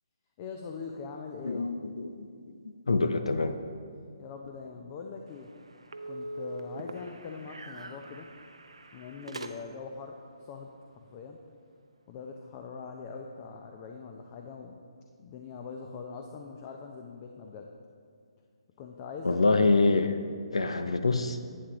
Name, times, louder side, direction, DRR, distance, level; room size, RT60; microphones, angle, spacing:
voice 1, 0.4-1.7 4.2-5.5 6.1-8.3 8.9-11.4 12.1-14.7 15.2-17.7 18.8-19.8, left 5 dB, 30° left, 3 dB, 0.6 m, -42 dB
voice 2, 1.4-2.5 2.9-3.6 19.2-20.2 20.5-21.4, left 3 dB, 80° left, 9 dB, 0.5 m, -26 dB
sound 1, 5.3-10.0, right 1 dB, 85° right, 0.6 m, -43 dB
11.0 x 8.4 x 3.0 m, 2.2 s
figure-of-eight pair, 145°, 3 cm